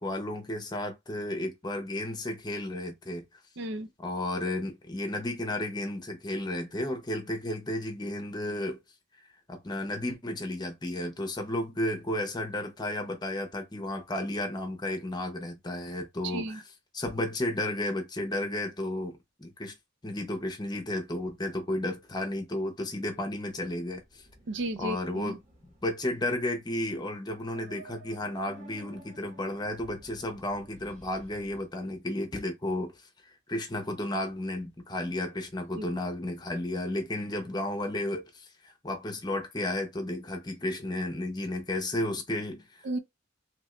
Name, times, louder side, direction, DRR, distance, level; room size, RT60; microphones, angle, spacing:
voice 1, 0.0-3.2 4.0-8.8 9.5-16.6 16.9-19.7 20.0-24.2 24.8-25.4 25.8-32.9 33.5-42.7, left 1 dB, 20° left, 0.8 m, -33 dB
voice 2, 3.6-3.9 16.2-16.6 24.5-25.4 35.8-35.9 42.8-43.0, right 1 dB, 60° right, 0.5 m, -34 dB
sound 1, 23.5-31.7, right 2 dB, 40° right, 1.3 m, -55 dB
2.9 x 2.6 x 3.1 m
head